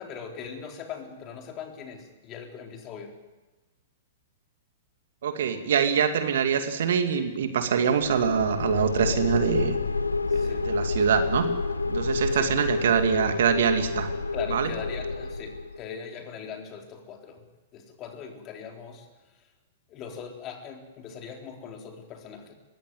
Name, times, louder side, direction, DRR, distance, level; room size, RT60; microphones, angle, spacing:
voice 1, 0.0-3.2 10.3-10.7 12.3-12.5 14.3-17.4 17.7-19.4 19.9-22.5, left 7 dB, 35° left, 3 dB, 3.9 m, -40 dB
voice 2, 5.2-9.8 10.3-11.5 11.9-14.1 14.5-14.7, right 7 dB, 65° right, 7 dB, 2.4 m, -24 dB
sound 1, 8.0-15.8, left 3 dB, 90° left, 1.0 m, -29 dB
21.5 x 16.5 x 9.3 m, 1.2 s
hypercardioid pair, 110°, 0 cm